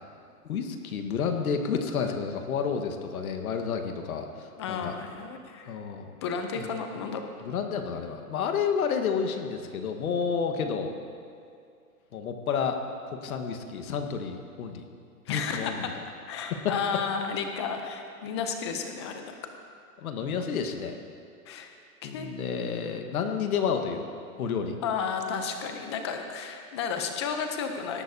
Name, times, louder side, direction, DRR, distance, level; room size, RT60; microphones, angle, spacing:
voice 1, 0.4-5.0 5.7-6.1 6.6-6.7 7.4-10.9 12.1-12.8 13.1-14.8 15.3-15.9 16.6-16.7 20.0-20.9 22.0-24.0 24.4-24.8, left 6 dB, 65° left, 5 dB, 1.5 m, -30 dB
voice 2, 4.6-5.8 6.2-7.3 15.3-15.9 16.3-19.3 21.5-21.7 22.0-22.3 24.8-28.0, left 6 dB, 20° left, 5 dB, 0.5 m, -32 dB
18.5 x 13.0 x 2.7 m, 2.4 s
hypercardioid pair, 155°, 46 cm